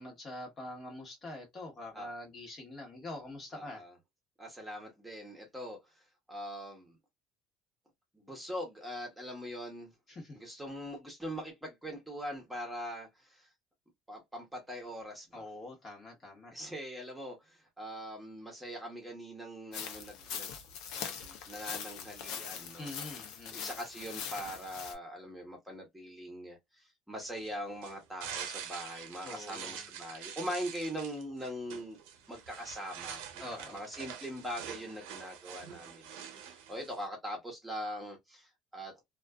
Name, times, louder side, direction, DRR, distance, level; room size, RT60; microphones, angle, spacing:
voice 1, 0.0-3.8 10.1-10.4 15.3-16.5 22.8-23.7 29.2-29.8 33.4-33.8, left 1 dB, 35° left, 1.2 m, -45 dB
voice 2, 3.5-3.9 4.4-5.8 6.3-7.0 8.1-9.9 10.3-13.5 14.1-15.4 16.5-20.6 21.0-22.9 23.5-32.0 32.3-38.9, equal, 5° right, 1.0 m, -42 dB
sound 1, 19.7-24.9, left 7 dB, 70° left, 0.6 m, -42 dB
sound 2, 27.2-37.1, right 8 dB, 90° right, 0.7 m, -45 dB
2.4 x 2.3 x 2.3 m
cardioid pair, 115°, 0 cm